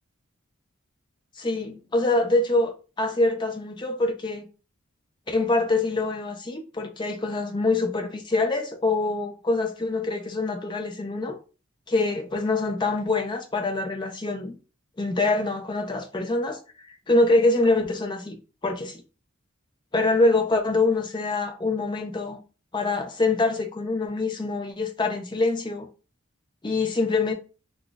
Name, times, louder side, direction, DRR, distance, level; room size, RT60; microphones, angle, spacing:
voice 1, 1.4-4.5 5.3-11.4 11.9-14.6 15.0-16.6 17.1-18.4 18.6-19.0 19.9-22.4 22.7-25.9 26.6-27.3, left 2 dB, 20° left, 0.4 m, -25 dB
2.4 x 2.3 x 3.7 m
head